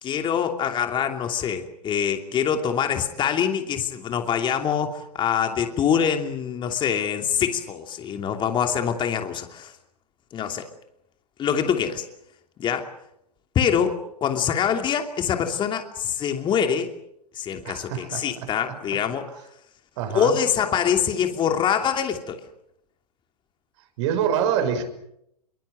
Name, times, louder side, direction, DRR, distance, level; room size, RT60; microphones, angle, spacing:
voice 1, 0.0-9.7 10.3-10.7 11.4-12.0 12.6-12.9 13.5-16.9 17.3-19.2 20.1-22.4, left 8 dB, 25° left, 5 dB, 2.9 m, -24 dB
voice 2, 17.6-18.3 20.0-20.4 24.0-24.9, right 8 dB, 50° right, 7 dB, 6.0 m, -25 dB
26.5 x 24.0 x 7.8 m, 0.77 s
figure-of-eight pair, 110°, 20 cm